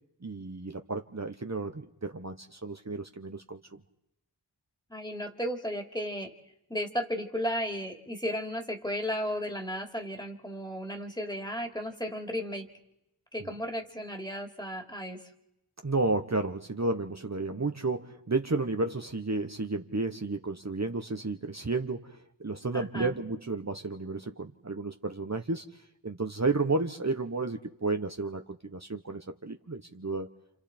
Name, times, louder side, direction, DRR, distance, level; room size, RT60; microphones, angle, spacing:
voice 1, 0.2-3.8 15.8-25.6 26.0-30.3, right 3 dB, 40° right, 5 dB, 1.2 m, -32 dB
voice 2, 4.9-6.3 6.7-12.7 13.3-15.2 22.7-23.1, equal, 10° left, 4 dB, 2.9 m, -34 dB
29.5 x 28.0 x 4.5 m, 0.85 s
wide cardioid pair, 45°, 42 cm